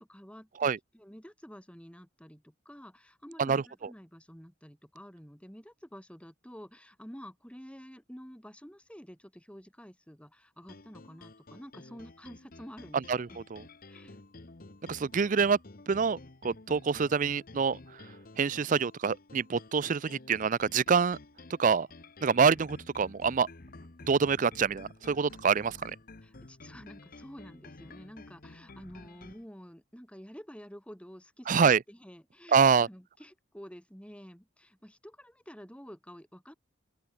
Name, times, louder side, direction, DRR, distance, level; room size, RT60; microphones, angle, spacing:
voice 1, 0.0-13.4 13.9-14.2 26.2-36.5, equal, 5° left, 7.0 m, -49 dB
sound 1, 10.6-29.5, left 2 dB, 45° left, 1.2 m, -51 dB
voice 2, 13.1-13.6 14.9-15.6 15.9-17.8 18.4-21.2 21.6-21.9 22.2-23.5 24.1-25.8 31.5-31.8 32.5-32.9, right 6 dB, 40° right, 0.4 m, -26 dB
open air
head